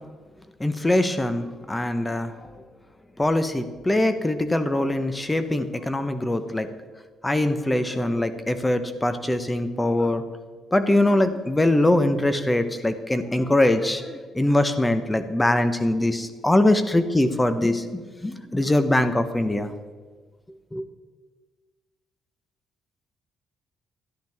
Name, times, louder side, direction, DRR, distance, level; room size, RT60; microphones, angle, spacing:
voice 1, 0.6-2.3 3.2-6.7 7.2-10.2 10.7-19.7 20.7-20.8, left 1 dB, 10° left, 10 dB, 0.9 m, -22 dB
13.5 x 11.0 x 3.6 m, 1.4 s
cardioid pair, 115°, 0 cm